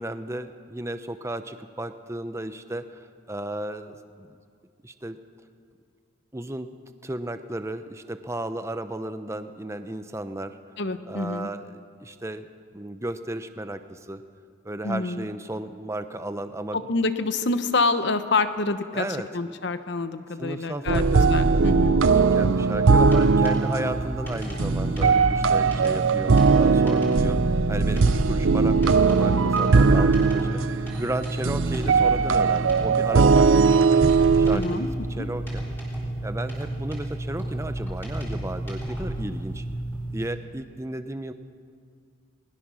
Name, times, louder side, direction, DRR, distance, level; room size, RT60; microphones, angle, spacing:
voice 1, 0.0-4.4 4.8-5.2 6.3-6.7 7.0-10.6 11.1-12.5 12.7-14.2 14.6-16.8 18.9-19.3 20.4-21.6 22.2-27.4 27.7-34.0 34.4-34.9 35.2-35.6 36.2-39.6 40.1-41.3, right 1 dB, 15° right, 9 dB, 0.7 m, -34 dB
voice 2, 10.8-11.5 14.8-15.2 16.7-19.0 19.3-22.0 34.5-34.9 35.1-35.3, left 3 dB, 55° left, 10 dB, 1.0 m, -27 dB
sound 1, 20.9-34.6, right 4 dB, 70° right, 0.6 m, -20 dB
sound 2, 22.3-40.3, right 1 dB, 10° left, 4.6 m, -32 dB
20.5 x 20.0 x 6.3 m, 2.2 s
head